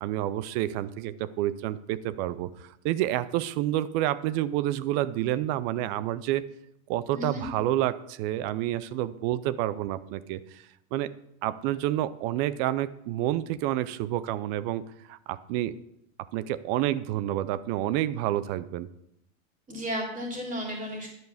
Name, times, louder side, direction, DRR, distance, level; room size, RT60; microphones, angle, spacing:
voice 1, 0.0-6.4 6.9-10.6 10.9-11.1 11.4-14.8 15.1-15.7 16.3-18.9, right 13 dB, 45° right, 16 dB, 0.6 m, -29 dB
voice 2, 7.1-7.4 19.7-21.1, equal, 20° right, 0 dB, 3.3 m, -33 dB
10.5 x 4.6 x 7.2 m, 0.81 s
supercardioid pair, 125°, 42 cm